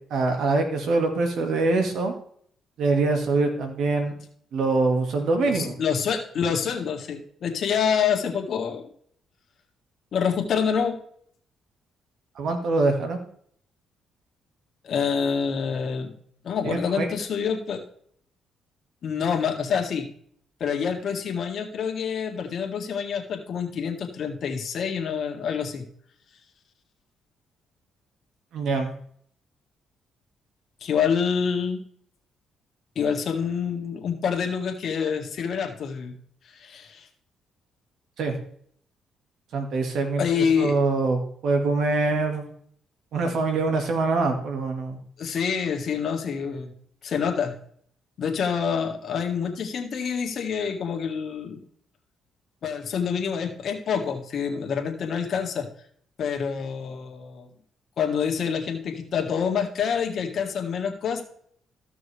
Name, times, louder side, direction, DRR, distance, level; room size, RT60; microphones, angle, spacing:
voice 1, 0.1-2.1 2.8-4.1 4.5-5.8 12.4-13.2 16.6-17.1 28.5-28.9 38.2-38.4 39.5-42.5 43.1-45.0, right 3 dB, 70° right, 4 dB, 2.0 m, -24 dB
voice 2, 5.4-8.9 10.1-11.0 14.8-16.1 16.4-17.8 19.0-20.1 20.6-25.8 30.8-31.8 32.9-36.1 36.5-37.1 40.2-40.8 45.2-46.7 47.0-47.5 48.2-51.6 52.6-55.7 56.2-57.5 58.0-61.2, left 6 dB, 60° left, 3 dB, 1.8 m, -27 dB
14.5 x 6.1 x 3.4 m, 0.62 s
cardioid pair, 90°, 0 cm